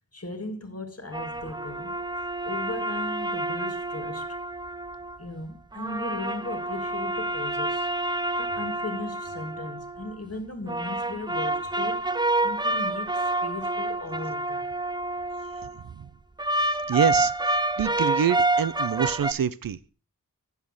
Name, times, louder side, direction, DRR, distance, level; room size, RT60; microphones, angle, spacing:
voice 1, 0.1-1.9 2.4-4.3 5.2-7.9 8.4-12.1 12.4-14.7, left 2 dB, 40° left, 1.7 m, -37 dB
sound 1, 1.1-5.2 5.7-10.1 10.7-15.8 16.4-19.3, right 2 dB, 10° right, 0.5 m, -28 dB
voice 2, 16.9-17.3 17.8-19.9, right 8 dB, 70° right, 0.6 m, -25 dB
7.2 x 5.6 x 6.4 m
cardioid pair, 40°, 36 cm